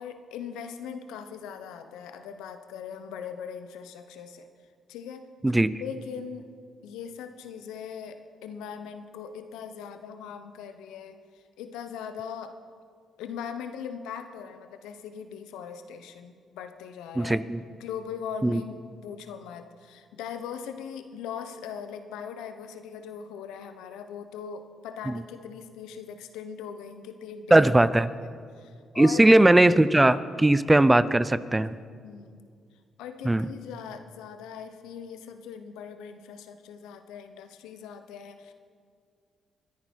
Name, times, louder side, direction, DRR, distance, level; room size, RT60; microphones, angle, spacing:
voice 1, 0.0-4.5 4.9-5.3 5.8-6.5 6.8-12.6 13.2-17.4 17.8-27.7 28.1-28.3 28.6-29.2 32.0-32.5 33.0-38.5, left 7 dB, 85° left, 9 dB, 0.9 m, -40 dB
voice 2, 17.2-17.6 18.4-18.6 25.1-25.2 27.5-28.1 29.0-31.8 33.2-33.5, right 1 dB, 15° right, 16 dB, 0.6 m, -19 dB
26.0 x 10.5 x 4.6 m, 2.2 s
supercardioid pair, 60°, 0 cm